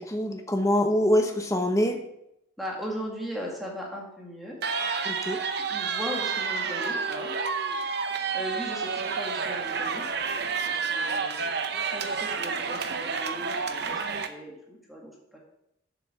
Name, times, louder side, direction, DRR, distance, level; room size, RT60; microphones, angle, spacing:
voice 1, 0.0-2.0 5.0-5.4, equal, 15° left, 5 dB, 0.9 m, -24 dB
voice 2, 2.6-4.6 5.7-7.3 8.3-10.1 10.6-15.4, equal, ahead, -3 dB, 2.0 m, -38 dB
sound 1, 4.6-14.3, right 5 dB, 55° right, 0.8 m, -30 dB
7.6 x 6.8 x 6.5 m, 0.83 s
head